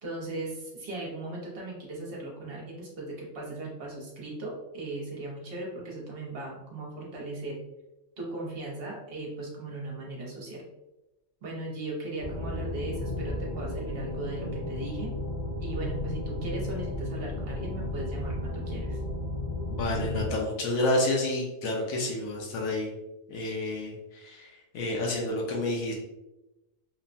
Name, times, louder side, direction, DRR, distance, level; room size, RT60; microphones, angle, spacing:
voice 1, 0.0-7.6 8.2-10.6 11.4-15.1 15.6-19.0, right 2 dB, 55° right, -3 dB, 0.9 m, -38 dB
sound 1, 12.2-20.3, left 1 dB, 50° left, 0.6 m, -33 dB
voice 2, 19.7-22.9 23.3-25.9, left 1 dB, 80° left, -1 dB, 0.9 m, -29 dB
3.0 x 2.1 x 2.4 m, 0.98 s
omnidirectional pair, 1.3 m